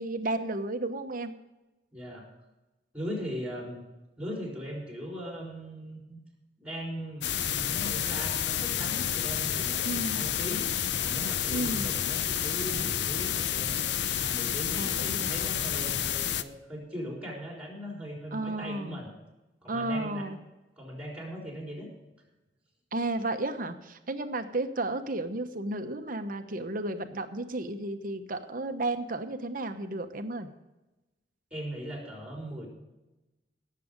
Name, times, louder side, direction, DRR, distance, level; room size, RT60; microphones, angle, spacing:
voice 1, 0.0-1.3 9.8-10.3 11.5-11.9 14.8-15.3 18.3-19.0 19.7-20.4 22.9-30.5, right 2 dB, 50° right, 8 dB, 1.0 m, -33 dB
voice 2, 1.9-2.3 2.9-3.8 4.2-6.2 6.6-10.7 11.0-13.9 14.2-19.1 19.6-20.3 20.8-21.9 31.5-32.7, equal, 10° right, -1 dB, 4.1 m, -39 dB
sound 1, 7.2-16.4, left 9 dB, 75° left, 0.6 m, -30 dB
18.0 x 7.6 x 5.2 m, 1.0 s
head